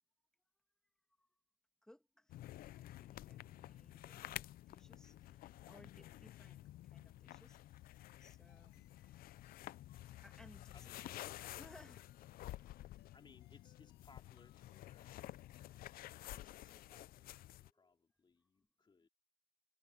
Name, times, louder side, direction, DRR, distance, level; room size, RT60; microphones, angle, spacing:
voice 1, 1.8-7.8 8.2-8.9 10.2-12.1 17.6-17.7, left 1 dB, 5° left, 2.2 m, -64 dB
sound 1, 2.3-17.7, left 14 dB, 60° left, 0.5 m, -52 dB
sound 2, 7.8-15.1, left 14 dB, 80° left, 2.0 m, -75 dB
voice 2, 10.7-11.4 13.1-15.3 15.7-19.1, left 4 dB, 30° left, 2.7 m, -67 dB
cardioid pair, 110°, 17 cm